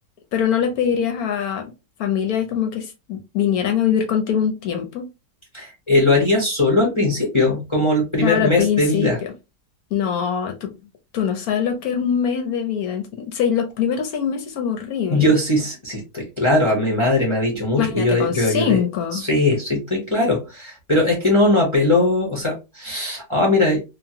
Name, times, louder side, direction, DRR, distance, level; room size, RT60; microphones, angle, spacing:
voice 1, 0.3-1.7 2.0-5.1 8.2-9.3 9.9-10.7 11.1-15.3 17.8-19.2, left 8 dB, 65° left, 1.0 m, -23 dB
voice 2, 5.5-9.2 15.1-18.8 19.1-23.8, left 2 dB, 30° left, 0.5 m, -19 dB
2.9 x 2.3 x 2.8 m
omnidirectional pair, 1.9 m